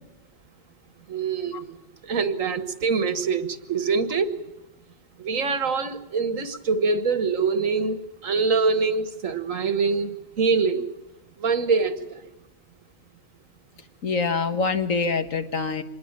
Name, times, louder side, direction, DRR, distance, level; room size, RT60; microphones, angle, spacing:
voice 1, 1.1-4.3 5.2-10.9 11.4-12.3, right 4 dB, 80° right, 1.9 m, -24 dB
voice 2, 14.0-15.8, left 4 dB, 90° left, 2.0 m, -25 dB
26.0 x 20.0 x 7.4 m
omnidirectional pair, 1.3 m